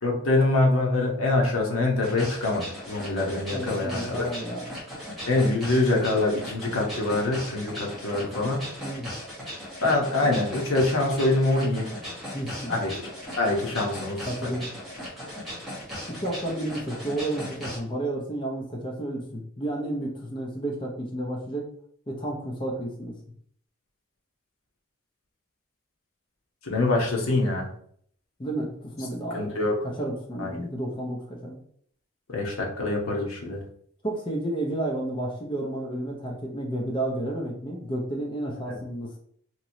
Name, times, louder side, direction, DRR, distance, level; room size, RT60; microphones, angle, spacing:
voice 1, 0.0-4.3 5.3-8.7 9.8-11.9 12.7-12.9 13.4-14.5 26.6-27.7 29.3-29.7 30.4-30.5 32.3-33.6 38.6-38.8, left 2 dB, 80° left, 0 dB, 0.9 m, -25 dB
sound 1, 2.0-17.8, equal, ahead, 1.1 m, -38 dB
voice 2, 3.5-4.8 8.8-9.1 12.3-12.8 14.3-14.7 16.1-21.7 22.1-23.2 28.4-29.6 29.9-31.6 34.0-39.2, right 1 dB, 25° left, -1 dB, 0.5 m, -31 dB
2.9 x 2.9 x 2.7 m, 0.63 s
head